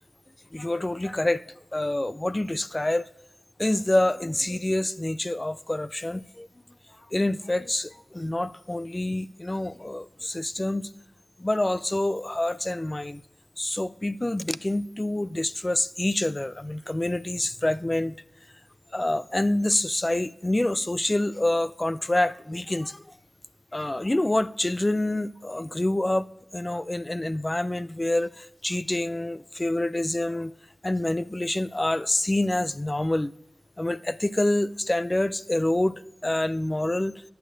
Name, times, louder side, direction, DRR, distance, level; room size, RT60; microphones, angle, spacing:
voice 1, 0.5-1.4 1.7-3.1 3.6-6.5 7.1-10.9 11.4-13.2 13.6-18.2 18.9-23.0 23.7-26.3 26.5-30.5 30.8-33.3 33.8-37.2, left 1 dB, 25° left, 0.4 m, -27 dB
14.0 x 9.1 x 2.6 m
wide cardioid pair, 65°, 0 cm